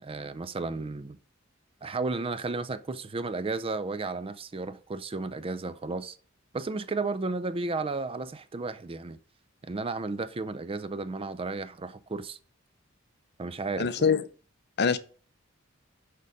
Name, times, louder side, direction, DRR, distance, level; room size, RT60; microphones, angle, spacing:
voice 1, 0.0-1.2 1.8-6.2 6.5-9.2 9.6-12.4 13.4-13.9, right 3 dB, 25° right, 0.4 m, -33 dB
voice 2, 13.8-14.2 14.8-15.0, left 6 dB, 55° left, 0.6 m, -23 dB
6.6 x 5.3 x 5.0 m
head